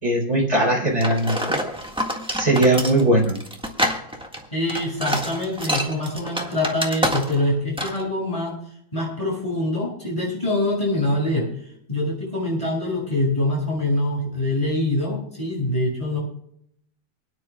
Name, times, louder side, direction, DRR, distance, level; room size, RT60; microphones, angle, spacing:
voice 1, 0.0-1.6 2.4-3.4, right 1 dB, 20° right, -1 dB, 3.6 m, -19 dB
sound 1, 1.0-7.5 7.8-8.0, equal, 5° right, 1.4 m, -26 dB
voice 2, 4.5-8.6 8.9-11.5 11.9-16.2, left 1 dB, 15° left, -3 dB, 7.2 m, -24 dB
28.5 x 10.0 x 2.3 m, 0.69 s
omnidirectional pair, 2.2 m